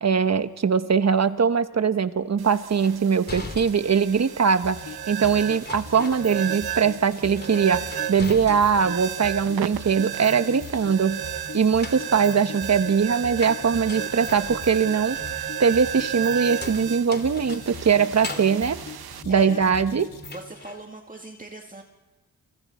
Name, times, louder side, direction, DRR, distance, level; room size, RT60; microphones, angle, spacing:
voice 1, 0.0-4.8 5.1-11.2 11.5-15.2 15.6-18.8 19.2-20.1, right 6 dB, 45° right, 11 dB, 1.2 m, -21 dB
sound 1, 2.4-19.2, right 11 dB, 85° right, 0.8 m, -34 dB
sound 2, 2.8-4.5 5.5-6.8 7.1-9.0 9.3-10.1 11.5-19.8 20.2-20.8, left 2 dB, 25° left, 2.7 m, -41 dB
sound 3, 4.6-20.5, left 3 dB, 60° left, 3.4 m, -41 dB
voice 2, 19.3-19.7 20.3-21.8, right 1 dB, 20° right, 1 dB, 2.2 m, -39 dB
29.5 x 25.0 x 4.3 m, 1.2 s
cardioid pair, 65°, 36 cm